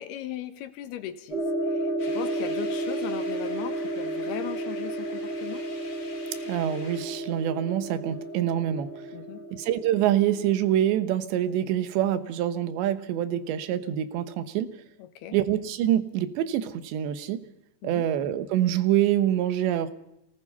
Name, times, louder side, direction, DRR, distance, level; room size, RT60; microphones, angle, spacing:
voice 1, 0.0-5.6 9.1-9.5 15.0-15.4 17.8-18.1, left 11 dB, 70° left, 10 dB, 3.1 m, -38 dB
sound 1, 1.3-10.8, right 1 dB, 25° right, 5.1 m, -32 dB
sound 2, 2.0-7.0, left 3 dB, 35° left, 1.4 m, -47 dB
voice 2, 6.5-8.9 9.5-14.8 15.3-17.5 17.8-19.9, right 11 dB, 85° right, 11 dB, 3.5 m, -26 dB
28.0 x 19.0 x 5.5 m, 0.84 s
omnidirectional pair, 5.0 m